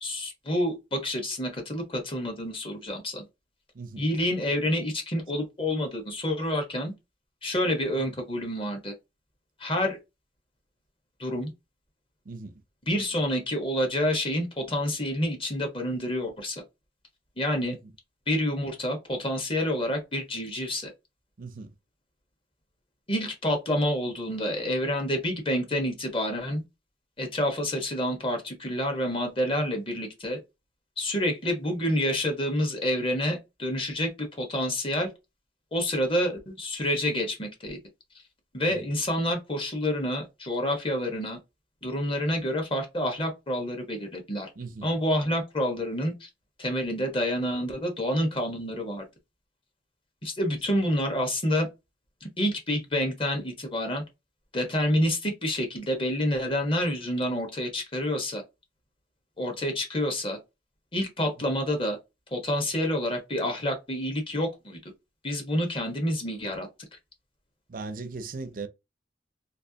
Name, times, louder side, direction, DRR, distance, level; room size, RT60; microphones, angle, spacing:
voice 1, 0.0-3.3 4.0-6.9 7.4-8.9 9.6-10.0 11.2-11.5 12.9-16.6 17.4-17.7 18.3-20.9 23.1-26.6 27.2-30.4 31.0-35.1 35.7-37.8 38.5-41.4 41.8-44.5 44.8-46.3 46.6-49.1 50.2-51.7 52.4-54.0 54.5-58.4 59.4-60.4 60.9-62.0 62.3-64.8 65.2-66.7, left 1 dB, 30° left, 1.1 m, -28 dB
voice 2, 3.7-4.1 12.3-12.6 17.6-17.9 21.4-21.7 38.6-38.9 44.6-44.9 61.4-61.5 67.7-68.7, right 3 dB, 50° right, 0.5 m, -39 dB
3.3 x 2.9 x 2.7 m
head